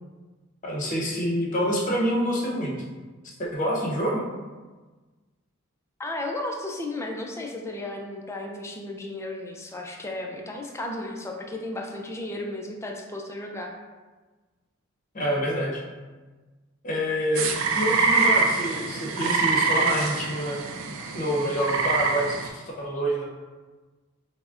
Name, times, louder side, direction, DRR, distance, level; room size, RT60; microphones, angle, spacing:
voice 1, 0.6-2.7 3.4-4.2 15.1-15.8 16.8-20.6 21.1-23.2, equal, 40° left, -3 dB, 0.7 m, -27 dB
voice 2, 6.0-13.7, left 2 dB, 15° left, 1 dB, 0.3 m, -34 dB
sound 1, 17.3-22.5, right 4 dB, 80° right, 0.4 m, -25 dB
6.0 x 2.1 x 2.4 m, 1.3 s
head